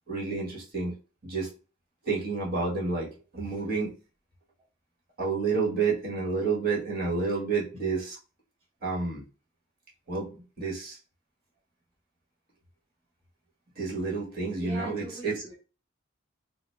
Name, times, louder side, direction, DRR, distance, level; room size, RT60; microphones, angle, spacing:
voice 1, 0.1-0.9 1.2-1.5 2.0-3.9 5.2-8.2 8.8-9.2 10.1-11.0 13.8-15.4, right 4 dB, 45° right, -4 dB, 1.6 m, -30 dB
voice 2, 14.6-15.5, right 2 dB, 30° right, -4 dB, 1.6 m, -40 dB
3.9 x 2.1 x 3.3 m, 0.34 s
head